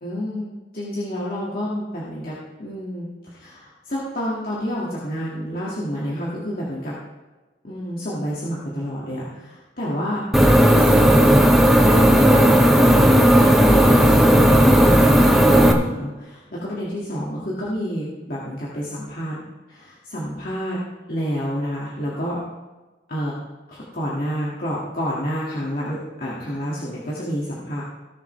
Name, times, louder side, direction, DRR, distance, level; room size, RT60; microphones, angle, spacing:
voice 1, 0.0-6.9 7.6-10.2 10.6-11.5 11.8-12.9 13.3-19.4 19.7-20.8 21.1-22.4 23.1-23.3 23.7-27.8, equal, 50° left, -7 dB, 2.2 m, -29 dB
sound 1, 10.3-15.7, equal, ahead, 1.0 m, -14 dB
18.0 x 7.4 x 3.4 m, 1.2 s
head